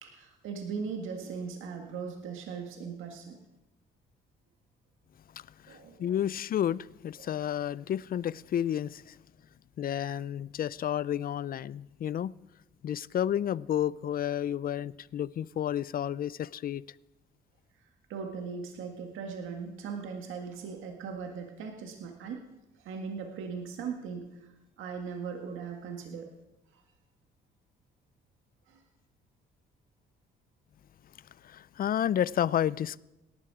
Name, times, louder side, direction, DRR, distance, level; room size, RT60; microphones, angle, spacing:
voice 1, 0.0-3.4 5.7-6.1 7.2-7.3 18.1-22.4 22.8-24.4 24.8-26.3 26.7-26.8 28.7-28.8, right 5 dB, 85° right, 1.9 m, -39 dB
voice 2, 5.6-9.2 9.8-12.4 12.8-16.8 31.4-33.0, left 10 dB, 45° left, 0.4 m, -31 dB
18.0 x 12.5 x 4.9 m
cardioid pair, 90°, 20 cm